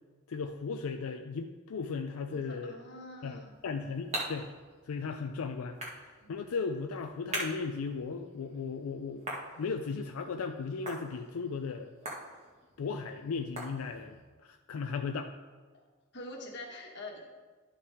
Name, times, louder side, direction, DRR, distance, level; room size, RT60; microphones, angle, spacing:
voice 1, 0.3-2.8 3.2-4.5 4.9-9.2 9.6-11.9 12.8-15.3, left 5 dB, 90° left, 6 dB, 0.4 m, -36 dB
voice 2, 2.3-3.6 6.2-6.5 15.7-15.8 16.1-17.2, left 1 dB, 55° left, 0 dB, 1.4 m, -45 dB
sound 1, 3.4-14.3, right 1 dB, 30° right, 1.6 m, -44 dB
11.5 x 5.6 x 3.5 m, 1.4 s
head